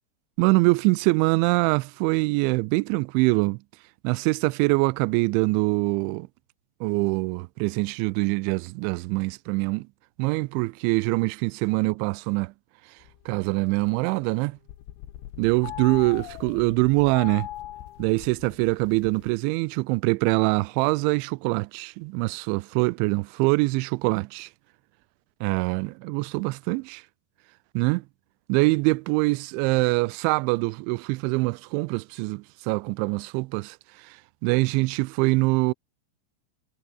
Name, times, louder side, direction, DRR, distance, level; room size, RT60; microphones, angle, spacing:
voice 1, 0.4-3.6 4.0-6.3 6.8-9.9 10.2-12.5 13.3-14.6 15.4-17.5 18.0-24.5 25.4-27.0 27.8-28.0 28.5-35.7, right 25 dB, 85° right, 2.8 m, -24 dB
sound 1, 13.0-14.3 14.6-19.3, left 14 dB, 80° left, 3.9 m, -40 dB
omnidirectional pair, 5.6 m